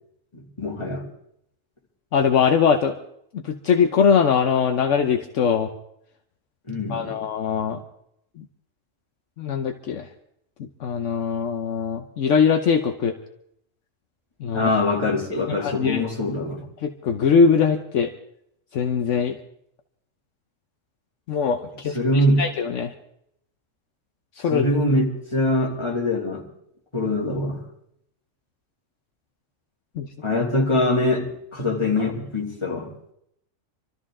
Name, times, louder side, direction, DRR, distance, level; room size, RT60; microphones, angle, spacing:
voice 1, 0.3-1.1 6.7-7.2 14.5-16.6 21.9-22.5 24.5-26.5 26.9-27.6 30.2-32.9, left 1 dB, 20° left, -2 dB, 2.7 m, -23 dB
voice 2, 2.1-3.0 3.4-5.7 6.9-7.8 8.4-8.5 9.4-10.1 10.6-13.1 14.4-14.7 15.5-16.1 16.8-18.1 18.7-19.4 21.3-22.9 24.4-24.6 30.0-30.1, left 6 dB, 70° left, 6 dB, 1.1 m, -21 dB
25.5 x 13.5 x 3.7 m, 0.74 s
omnidirectional pair, 1.3 m